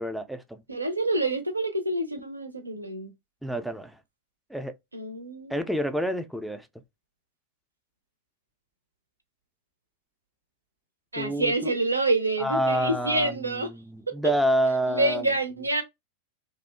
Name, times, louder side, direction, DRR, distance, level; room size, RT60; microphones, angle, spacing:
voice 1, 0.0-0.6 3.4-4.0 4.5-4.7 5.5-6.7 11.2-11.5 12.4-15.2, equal, ahead, 0.4 m, -28 dB
voice 2, 0.7-3.1 4.9-5.7 11.1-13.7 14.1-14.2 14.9-15.8, right 2 dB, 85° right, 0.5 m, -27 dB
2.7 x 2.0 x 2.3 m
figure-of-eight pair, 90°, 0 cm